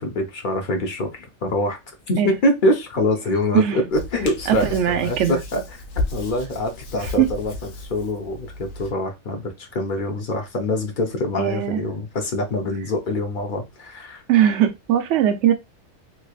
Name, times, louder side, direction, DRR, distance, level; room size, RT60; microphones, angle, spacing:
voice 1, 0.0-1.8 2.1-5.6 6.1-7.5 7.8-14.2, left 1 dB, 45° left, 0.8 m, -24 dB
Hands, 3.9-8.9, left 2 dB, 90° left, 1.1 m, -33 dB
voice 2, 4.5-5.4 7.2-7.3 11.4-11.8 14.3-15.5, right 10 dB, 70° right, 0.9 m, -19 dB
3.2 x 3.1 x 2.4 m
omnidirectional pair, 1.3 m